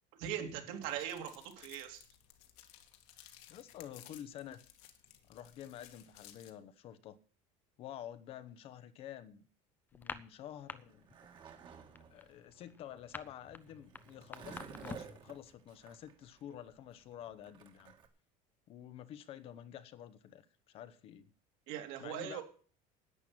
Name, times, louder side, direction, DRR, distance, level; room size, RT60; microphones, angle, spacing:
voice 1, 0.1-2.0 21.7-22.4, right 10 dB, 65° right, 3.0 m, -40 dB
sound 1, 0.8-6.5, left 12 dB, 70° left, 2.0 m, -58 dB
voice 2, 3.5-4.6 5.3-7.2 7.8-9.5 9.9-11.1 12.1-17.9 18.7-21.3 22.0-22.4, left 10 dB, 40° left, 0.9 m, -49 dB
sound 2, 9.9-10.8 11.1-11.4 11.7-15.2, left 4 dB, 10° left, 0.6 m, -46 dB
Skateboard, 10.6-18.1, right 6 dB, 30° right, 1.7 m, -54 dB
11.0 x 9.3 x 8.8 m
cardioid pair, 175°, 16 cm